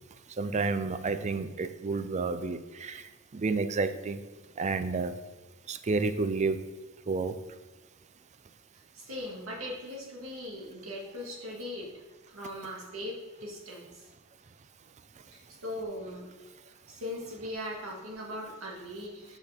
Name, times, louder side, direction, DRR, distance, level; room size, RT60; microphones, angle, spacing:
voice 1, 0.4-4.2 4.6-5.1 5.7-6.7 7.1-7.4, right 4 dB, 35° right, 11 dB, 0.4 m, -30 dB
voice 2, 8.7-14.1 15.3-16.3 16.9-19.4, left 1 dB, 85° right, -2 dB, 2.0 m, -40 dB
8.0 x 6.0 x 3.5 m, 1.2 s
head